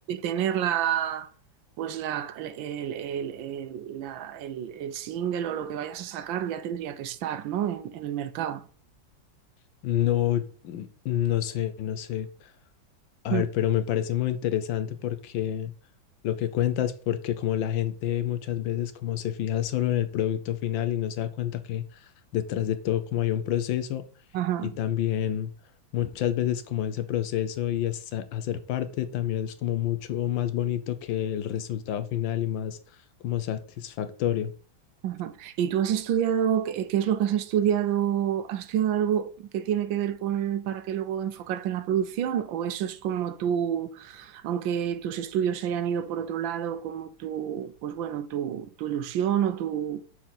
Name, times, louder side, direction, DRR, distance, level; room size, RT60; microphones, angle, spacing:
voice 1, 0.1-1.3 1.8-8.6 13.3-13.4 24.3-24.8 35.0-50.0, right 9 dB, 80° right, 1.4 m, -28 dB
voice 2, 9.8-12.5 13.2-15.7 16.2-24.0 24.6-25.5 25.9-32.8 33.2-34.5, left 11 dB, 75° left, 1.5 m, -28 dB
6.3 x 4.4 x 5.6 m
omnidirectional pair, 2.1 m